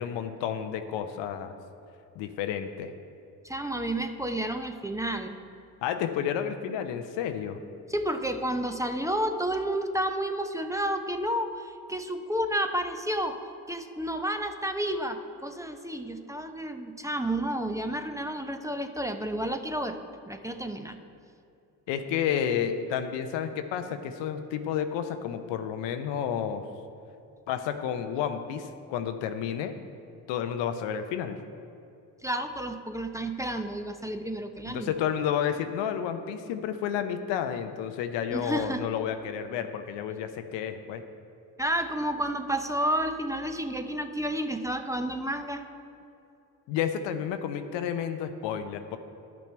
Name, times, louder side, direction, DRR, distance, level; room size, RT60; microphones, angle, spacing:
voice 1, 0.0-1.5 2.2-2.9 5.8-7.6 21.9-26.6 27.5-29.7 30.3-31.4 34.6-41.0 46.7-49.0, left 8 dB, 75° left, 8 dB, 0.7 m, -31 dB
voice 2, 3.4-5.4 7.9-13.4 13.7-20.0 20.3-21.0 32.2-34.9 38.3-38.9 41.6-45.6, right 1 dB, 5° right, 6 dB, 0.7 m, -31 dB
11.5 x 6.1 x 4.5 m, 2.7 s
hypercardioid pair, 45°, 44 cm